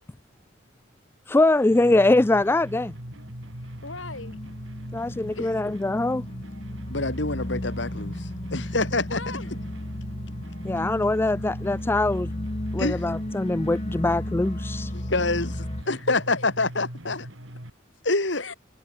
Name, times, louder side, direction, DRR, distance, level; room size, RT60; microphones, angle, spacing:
voice 1, 1.3-2.9 4.9-6.3 10.6-12.5 12.7-14.9, left 2 dB, 10° left, 0.3 m, -23 dB
sound 1, 1.7-17.7, equal, 85° right, 6.2 m, -40 dB
sound 2, 2.7-15.8, left 1 dB, 30° left, 1.4 m, -35 dB
voice 2, 3.5-4.4 5.3-5.6 9.1-9.7 16.1-16.4 18.1-18.5, left 3 dB, 90° left, 4.2 m, -40 dB
voice 3, 6.9-9.2 12.8-13.1 14.9-17.3 18.0-18.4, left 2 dB, 70° left, 2.9 m, -26 dB
head